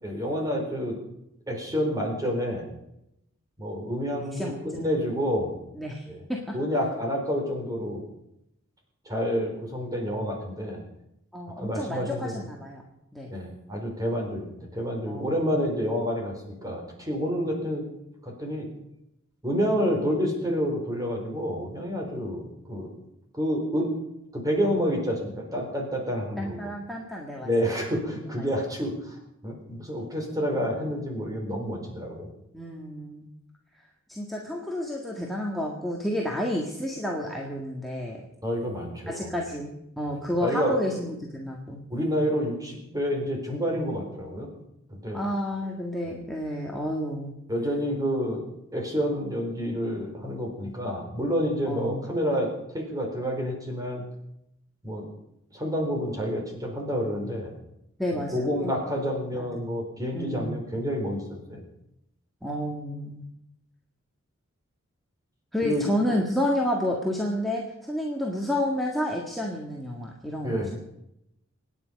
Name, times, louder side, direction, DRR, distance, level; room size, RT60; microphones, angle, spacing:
voice 1, 0.0-1.0 1.5-2.6 3.6-5.5 6.0-6.2 6.5-8.0 9.1-10.8 11.6-12.3 13.3-16.3 16.6-17.8 18.2-18.7 19.4-22.9 23.3-23.9 24.3-26.7 27.4-29.2 29.4-32.3 38.4-39.3 40.1-40.8 41.9-44.5 44.9-45.2 47.5-48.4 48.7-54.0 54.8-55.1 55.5-57.5 58.3-61.2 61.5-61.6 65.6-65.9 70.4-70.8, equal, 20° right, 1 dB, 4.2 m, -29 dB
voice 2, 4.3-4.8 5.7-6.0 6.3-6.4 11.3-12.8 13.1-13.3 15.1-15.3 26.4-27.7 28.1-28.5 32.5-33.3 34.1-38.2 39.1-41.8 45.1-47.3 51.7-52.1 58.0-58.7 59.3-59.5 60.1-60.6 62.4-63.3 65.5-70.8, left 1 dB, ahead, -2 dB, 1.8 m, -30 dB
25.5 x 10.0 x 5.3 m, 0.82 s
head